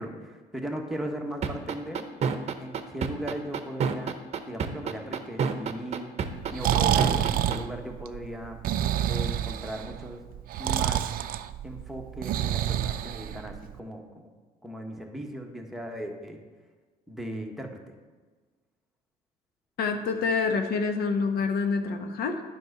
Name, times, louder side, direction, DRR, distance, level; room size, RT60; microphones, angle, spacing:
voice 1, 0.0-2.0 2.6-4.2 4.5-6.2 6.5-8.6 9.1-10.2 10.6-11.1 11.6-14.3 14.6-16.4 17.1-17.8, right 1 dB, ahead, 1 dB, 1.2 m, -37 dB
sound 1, 1.4-7.6, right 6 dB, 40° right, 0.8 m, -28 dB
Breathing, 6.3-13.7, right 11 dB, 60° right, 0.5 m, -28 dB
voice 2, 19.8-22.4, left 4 dB, 65° left, 6 dB, 1.0 m, -27 dB
9.7 x 5.3 x 6.5 m, 1.4 s
cardioid pair, 110°, 17 cm